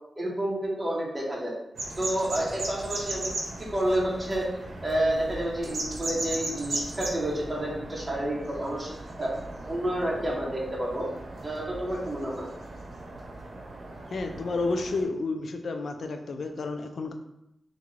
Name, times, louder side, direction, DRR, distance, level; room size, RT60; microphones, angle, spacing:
voice 1, 0.2-1.5 2.0-3.3 3.7-4.5 4.8-9.3 9.7-11.1 11.4-12.5, right 1 dB, 15° right, -4 dB, 0.8 m, -29 dB
sound 1, 1.7-15.0, right 2 dB, 65° right, 0.7 m, -37 dB
voice 2, 14.1-17.1, left 3 dB, 70° left, 5 dB, 0.4 m, -31 dB
3.4 x 2.6 x 3.1 m, 0.85 s
wide cardioid pair, 120°, 0 cm